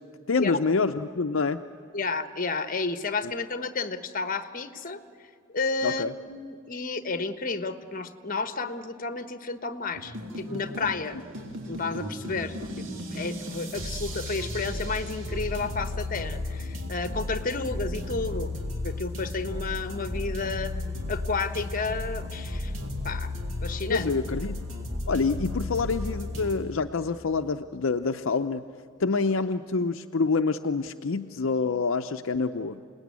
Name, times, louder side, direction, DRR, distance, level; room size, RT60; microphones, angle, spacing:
voice 1, 0.3-1.6 5.8-6.1 23.9-24.6 25.1-28.6 29.0-32.8, left 4 dB, 65° left, 7 dB, 0.6 m, -27 dB
voice 2, 1.9-5.0 5.5-11.2 11.7-18.5 18.8-20.8 21.1-22.7 23.0-23.3 23.6-24.1, left 4 dB, 40° left, 10 dB, 1.2 m, -31 dB
sound 1, 9.9-26.5, left 1 dB, 70° right, 3.4 m, -34 dB
28.0 x 19.0 x 9.6 m, 2.4 s
head